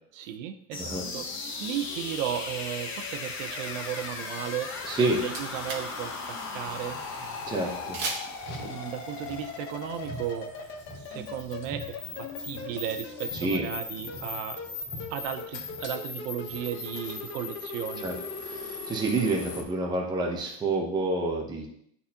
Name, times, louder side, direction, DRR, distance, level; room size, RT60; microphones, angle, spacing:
voice 1, 0.1-1.3 1.6-7.0 8.3-10.5 11.1-14.6 15.1-18.1, right 10 dB, 80° right, 8 dB, 0.9 m, -35 dB
sound 1, 0.7-19.6, left 4 dB, 30° left, 1.0 m, -38 dB
voice 2, 4.9-5.2 7.5-8.0 13.4-13.6 18.0-18.1 18.4-21.7, right 2 dB, 10° right, -1 dB, 0.8 m, -28 dB
sound 2, 5.1-6.0 6.3-6.4 7.9-8.5, right 3 dB, 40° right, 1.4 m, -35 dB
Car, 8.4-17.3, left 1 dB, 60° left, 2.3 m, -45 dB
10.5 x 4.2 x 2.9 m, 0.67 s
cardioid pair, 175°, 38 cm